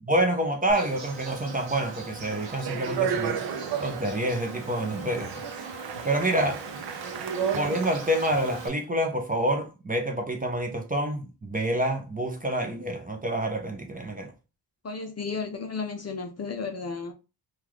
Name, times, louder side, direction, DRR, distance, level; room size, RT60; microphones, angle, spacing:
voice 1, 0.0-5.4 6.0-6.6 7.5-14.3, right 1 dB, 20° right, 0.6 m, -27 dB
Insect, 0.7-8.7, right 4 dB, 75° right, 1.0 m, -41 dB
Speech, 2.3-8.1, right 7 dB, 60° right, 0.6 m, -33 dB
voice 2, 14.8-17.1, left 4 dB, 35° left, 0.5 m, -33 dB
3.7 x 2.4 x 3.0 m
wide cardioid pair, 140°, 45 cm